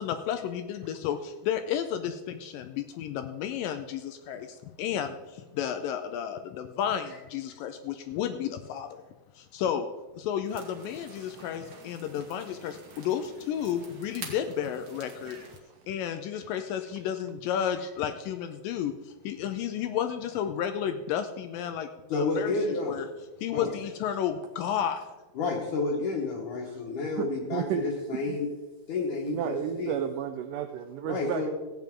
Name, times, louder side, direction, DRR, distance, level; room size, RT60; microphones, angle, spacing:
voice 1, 0.0-9.0 9.4-9.9 10.2-15.4 15.9-23.1 23.4-25.0, left 9 dB, 80° left, 8 dB, 2.1 m, -32 dB
sound 1, 10.5-15.6, right 3 dB, 60° right, 0.9 m, -47 dB
voice 2, 22.1-23.0 23.5-23.7 25.4-28.5 28.9-29.9 31.0-31.5, left 3 dB, 65° left, -2 dB, 2.5 m, -30 dB
voice 3, 26.7-27.9 28.3-28.4 29.0-31.5, right 10 dB, 90° right, 8 dB, 1.8 m, -33 dB
15.5 x 9.1 x 3.7 m, 1.1 s
omnidirectional pair, 4.4 m